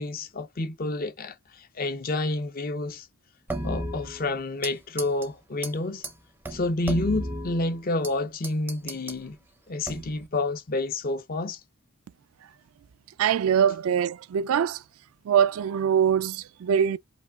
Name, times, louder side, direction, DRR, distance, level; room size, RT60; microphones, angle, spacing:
voice 1, 0.0-3.1 3.6-6.0 6.5-9.4 9.7-11.6, left 2 dB, 40° left, 0.5 m, -29 dB
sound 1, 3.5-4.7 5.0-5.3 5.6-5.7 6.0-6.1 6.4-8.1 8.4-9.2 9.8-10.3, right 1 dB, 10° right, 0.5 m, -34 dB
voice 2, 13.2-14.8 15.3-17.0, right 8 dB, 70° right, 0.3 m, -23 dB
5.1 x 2.3 x 2.3 m
head